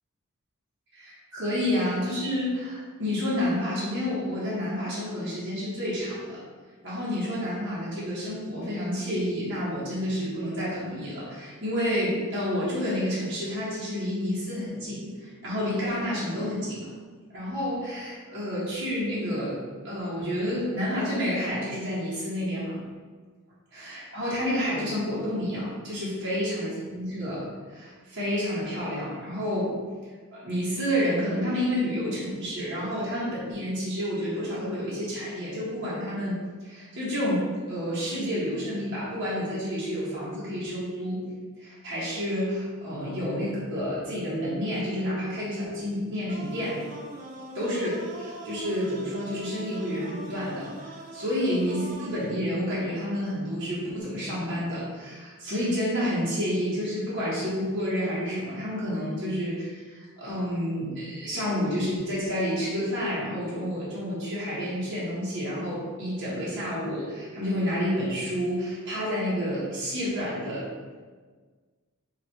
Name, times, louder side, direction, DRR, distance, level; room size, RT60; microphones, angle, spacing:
voice 1, 0.9-6.4 6.8-16.9 17.3-19.6 19.8-22.8 23.7-27.4 27.7-29.7 30.3-41.2 41.6-46.8 47.6-70.7, equal, 60° right, -8 dB, 1.4 m, -29 dB
sound 1, 46.3-52.3, right 1 dB, 35° right, 0.5 m, -42 dB
4.7 x 2.3 x 4.4 m, 1.5 s
head